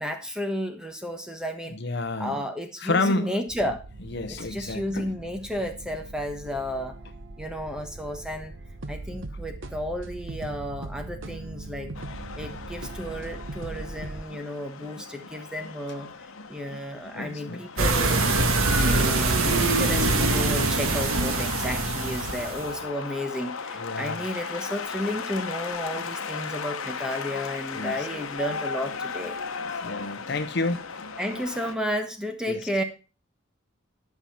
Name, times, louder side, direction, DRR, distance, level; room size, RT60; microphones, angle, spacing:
voice 1, 0.0-1.8 2.2-3.8 4.3-7.0 7.4-8.5 8.9-11.9 12.4-16.1 16.5-18.3 18.7-29.4 29.7-29.8 31.2-32.8, equal, 5° right, 1.2 m, -32 dB
voice 2, 1.7-2.4 2.8-3.3 4.1-5.1 17.1-17.6 23.8-24.2 27.7-28.1 29.8-30.8 32.5-32.6, left 3 dB, 55° left, 0.8 m, -29 dB
sound 1, 3.5-14.2, right 2 dB, 65° right, 1.2 m, -40 dB
sound 2, 11.9-31.8, left 5 dB, 85° left, 1.0 m, -37 dB
sound 3, 17.8-22.7, right 2 dB, 90° right, 1.5 m, -23 dB
11.0 x 5.8 x 5.6 m
head